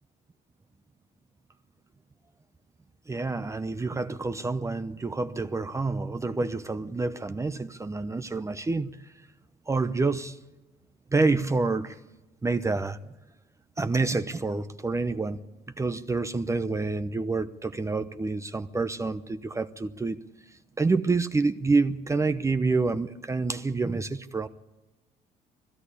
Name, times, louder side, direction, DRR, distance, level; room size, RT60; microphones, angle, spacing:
voice 1, 3.1-9.0 9.7-10.4 11.1-12.0 12.4-13.0 13.8-15.4 15.8-20.2 20.8-24.5, right 3 dB, 15° right, 0.8 m, -28 dB
20.0 x 16.0 x 8.4 m
cardioid pair, 110°, 17 cm